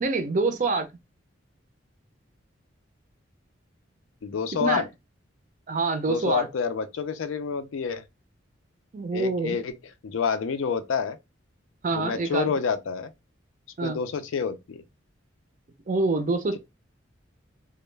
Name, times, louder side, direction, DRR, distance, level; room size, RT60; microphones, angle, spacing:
voice 1, 0.0-0.9 4.6-4.8 5.7-6.5 8.9-9.6 11.8-12.5 13.8-14.0 15.9-16.6, right 3 dB, 40° right, 0.4 m, -26 dB
voice 2, 4.2-4.9 6.1-8.0 9.1-9.7 10.0-11.2 11.9-13.1 13.8-14.8, left 6 dB, 85° left, 0.4 m, -28 dB
2.2 x 2.1 x 3.1 m
head